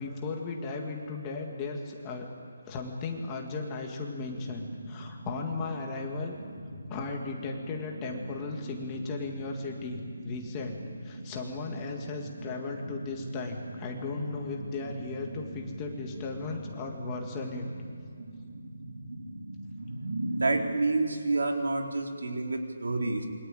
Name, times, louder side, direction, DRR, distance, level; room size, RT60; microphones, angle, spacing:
voice 1, 0.0-2.3 2.7-6.4 6.9-10.8 11.0-17.7, left 3 dB, 10° left, 1 dB, 1.9 m, -36 dB
sound 1, 4.3-20.8, right 1 dB, 60° right, 4.2 m, -41 dB
voice 2, 20.3-23.3, right 3 dB, 85° right, 2 dB, 4.5 m, -28 dB
27.5 x 23.5 x 9.0 m, 2.2 s
hypercardioid pair, 180°, 0 cm